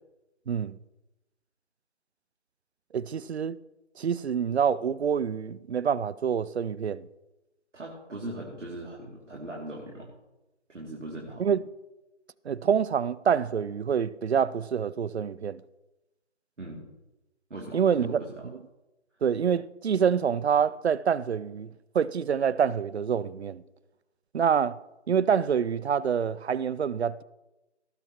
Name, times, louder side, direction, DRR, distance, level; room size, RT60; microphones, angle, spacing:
voice 1, 0.5-0.8 2.9-3.6 4.0-7.1 11.4-11.6 12.5-15.6 17.7-18.2 19.2-21.7 21.9-23.6 24.3-24.8 25.1-27.2, right 7 dB, 65° right, 0.5 m, -26 dB
voice 2, 7.7-10.1 10.7-11.5 16.6-16.9 17.5-18.5, right 1 dB, 85° right, 2.7 m, -39 dB
18.5 x 9.0 x 3.0 m
figure-of-eight pair, 160°, 36 cm